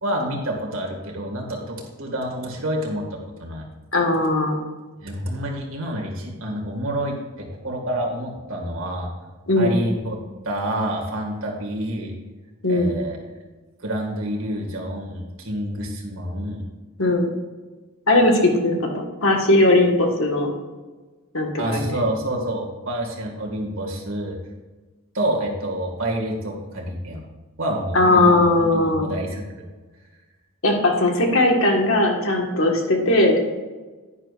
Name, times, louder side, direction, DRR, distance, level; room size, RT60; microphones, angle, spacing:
voice 1, 0.0-3.6 5.0-9.1 9.6-10.2 10.4-12.1 12.7-13.2 13.8-16.6 21.6-24.4 25.1-27.2 27.6-29.6, right 1 dB, 65° right, 0 dB, 2.0 m, -28 dB
voice 2, 3.9-4.6 9.5-9.8 12.6-13.0 17.0-17.3 18.1-20.5 21.3-22.0 27.9-29.1 30.6-33.4, left 2 dB, 65° left, 1 dB, 1.6 m, -19 dB
10.5 x 10.0 x 2.5 m, 1.3 s
head